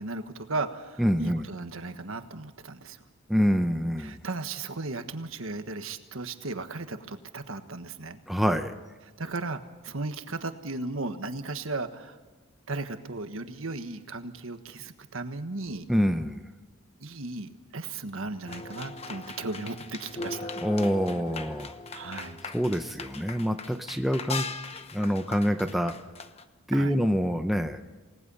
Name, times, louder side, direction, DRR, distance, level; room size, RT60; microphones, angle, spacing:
voice 1, 0.0-3.0 4.0-8.2 9.2-12.2 12.7-15.9 17.0-20.5 21.9-22.4 23.9-24.1 25.0-25.1 26.7-27.0, right 3 dB, 70° right, 8 dB, 1.4 m, -36 dB
voice 2, 1.0-1.5 3.3-4.2 8.3-8.7 15.9-16.4 20.6-21.7 22.5-24.5 24.9-25.9 26.7-27.8, equal, ahead, 6 dB, 0.8 m, -26 dB
sound 1, 18.5-26.4, left 4 dB, 30° left, 0.9 m, -39 dB
28.5 x 18.5 x 5.6 m, 1.2 s
head